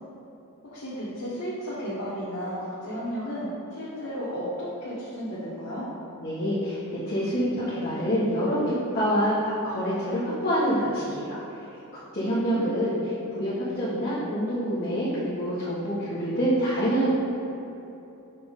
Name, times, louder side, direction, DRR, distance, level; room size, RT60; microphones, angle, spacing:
voice 1, 0.6-5.8 12.2-12.9, equal, 90° left, -11 dB, 1.4 m, -33 dB
voice 2, 6.2-11.4 11.9-17.1, equal, 45° left, -12 dB, 1.3 m, -26 dB
5.9 x 3.4 x 5.3 m, 2.9 s
head